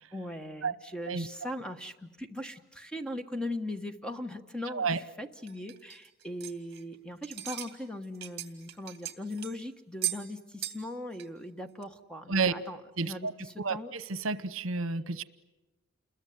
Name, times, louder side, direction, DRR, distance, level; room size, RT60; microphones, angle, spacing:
voice 1, 0.1-13.9, left 1 dB, 5° left, 7 dB, 1.3 m, -39 dB
voice 2, 4.7-5.0 12.3-12.5 13.0-13.3 13.6-15.2, right 4 dB, 80° right, 15 dB, 0.9 m, -30 dB
sound 1, 5.5-7.0 7.2-7.7 8.0-9.6 10.0-10.3 10.6-10.9 11.1-11.3 11.8-11.9, right 13 dB, 55° right, 2.4 m, -37 dB
29.0 x 21.5 x 9.5 m, 1.1 s
head